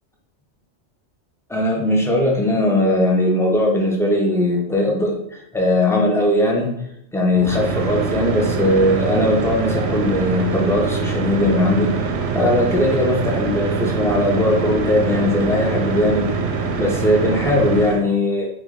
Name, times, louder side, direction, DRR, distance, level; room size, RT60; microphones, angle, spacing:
voice 1, 1.5-6.7 7.1-11.9 12.3-16.3 16.8-18.5, left 1 dB, 5° left, -1 dB, 0.5 m, -19 dB
sound 1, 7.3-18.0, right 5 dB, 70° right, 0.8 m, -24 dB
3.5 x 3.4 x 3.7 m, 0.75 s
omnidirectional pair, 1.2 m